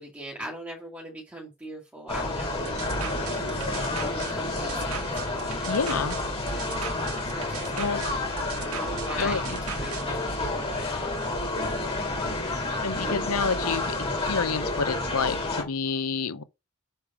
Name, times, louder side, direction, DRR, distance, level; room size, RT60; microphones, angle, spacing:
voice 1, 0.0-3.6 4.3-5.0 5.3-5.8 6.4-6.7 7.2-8.3 8.7-11.2, right 1 dB, 5° right, 2.2 m, -41 dB
sound 1, 2.1-15.6, left 2 dB, 25° left, 3.1 m, -30 dB
sound 2, 2.7-10.1, right 8 dB, 70° right, 0.9 m, -39 dB
voice 2, 5.6-6.2 7.7-8.0 9.2-9.6 12.4-16.4, left 5 dB, 80° left, 0.8 m, -29 dB
6.7 x 5.1 x 4.9 m
head